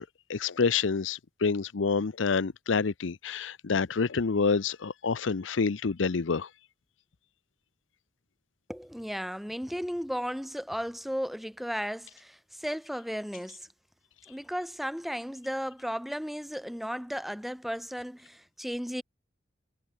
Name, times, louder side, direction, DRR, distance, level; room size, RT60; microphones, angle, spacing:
voice 1, 0.0-6.5, left 5 dB, 85° left, 0.7 m, -28 dB
voice 2, 8.7-13.7 14.3-19.0, equal, ahead, 1.9 m, -35 dB
head